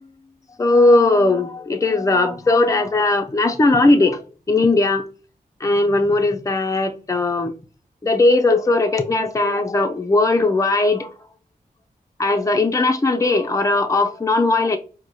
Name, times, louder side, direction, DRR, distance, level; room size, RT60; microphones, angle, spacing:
voice 1, 0.6-4.2 4.5-5.1 5.6-7.5 8.0-11.1 12.2-14.8, left 2 dB, 20° left, 0.5 m, -18 dB
4.5 x 2.2 x 2.6 m
wide cardioid pair, 65°, 16 cm